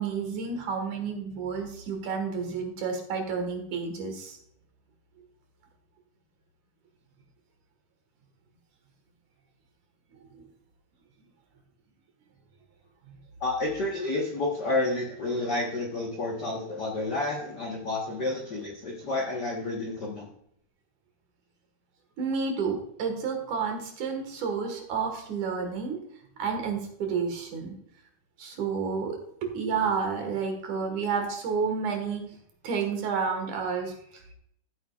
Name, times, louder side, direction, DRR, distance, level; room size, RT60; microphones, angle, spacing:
voice 1, 0.0-4.4 10.2-10.5 13.1-13.2 22.2-26.0 26.4-27.7 28.4-32.2 32.6-34.3, right 5 dB, 65° right, 4 dB, 2.8 m, -30 dB
voice 2, 13.4-20.3, left 2 dB, 70° left, -1 dB, 0.9 m, -30 dB
14.0 x 8.0 x 2.4 m, 0.71 s
omnidirectional pair, 4.1 m